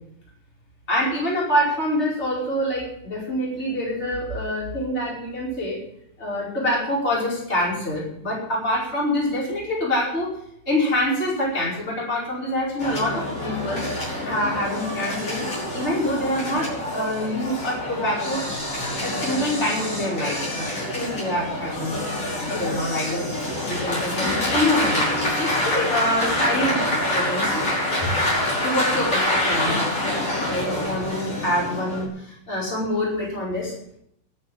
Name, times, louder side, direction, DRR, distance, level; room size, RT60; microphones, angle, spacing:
voice 1, 0.9-5.8 6.2-10.3 10.7-13.9 14.3-15.4 15.7-18.4 19.0-22.0 22.4-27.7 28.6-29.9 30.5-33.7, left 1 dB, 15° left, -5 dB, 5.1 m, -26 dB
sound 1, 12.8-32.1, left 1 dB, 40° left, 6.8 m, -26 dB
12.5 x 7.4 x 9.9 m, 0.74 s
omnidirectional pair, 4.1 m